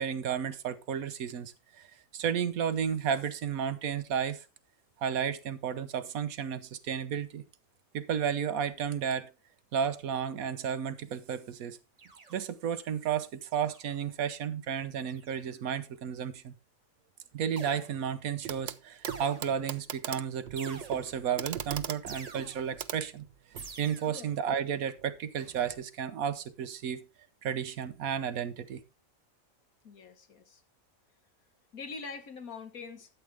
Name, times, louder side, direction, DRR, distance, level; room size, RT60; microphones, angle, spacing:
voice 1, 0.0-4.4 5.0-7.4 7.9-9.3 9.7-11.8 12.3-16.5 17.3-23.2 23.8-27.0 27.4-28.8, right 8 dB, 85° right, 1.3 m, -33 dB
sound 1, 12.0-12.7 13.5-14.1 15.0-15.6 17.6-18.3 19.1-19.8 20.6-21.3 22.1-22.9 23.6-24.4 25.4-25.8, right 4 dB, 30° right, 1.0 m, -48 dB
Clock, 18.4-18.8 19.0-23.7 25.0-25.1, right 9 dB, 55° right, 0.8 m, -40 dB
voice 2, 29.8-30.6 31.7-33.1, left 4 dB, 90° left, 1.9 m, -44 dB
12.5 x 7.9 x 3.4 m
omnidirectional pair, 1.4 m